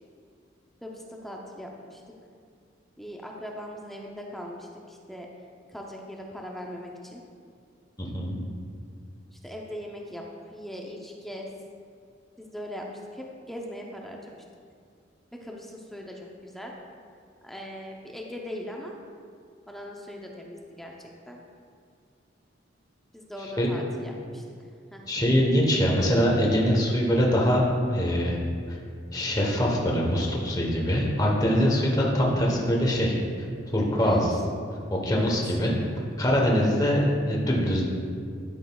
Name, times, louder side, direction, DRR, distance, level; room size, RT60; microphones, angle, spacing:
voice 1, 0.8-2.0 3.0-5.3 5.7-7.2 9.3-10.3 10.5-11.5 12.4-14.4 15.3-16.7 17.4-18.9 19.7-21.4 23.1-24.4 24.9-25.0 34.0-34.2 35.1-35.3, equal, ahead, -1 dB, 0.5 m, -40 dB
voice 2, 8.0-8.4 23.6-23.7 25.1-28.4 28.7-28.8 29.1-34.4 34.9-37.8, equal, 20° left, -2 dB, 1.0 m, -23 dB
11.5 x 6.4 x 2.3 m, 2.2 s
head